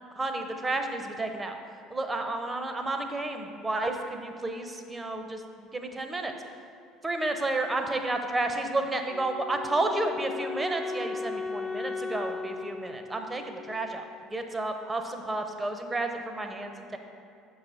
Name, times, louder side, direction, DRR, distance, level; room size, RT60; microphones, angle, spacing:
voice 1, 0.2-1.6 1.9-6.3 7.0-14.0 14.3-17.0, right 2 dB, 20° right, 5 dB, 0.7 m, -31 dB
Wind instrument woodwind instrument, 9.1-14.1, left 4 dB, 25° left, 0.5 m, -36 dB
6.5 x 4.8 x 4.0 m, 2.6 s
hypercardioid pair, 65°, 0 cm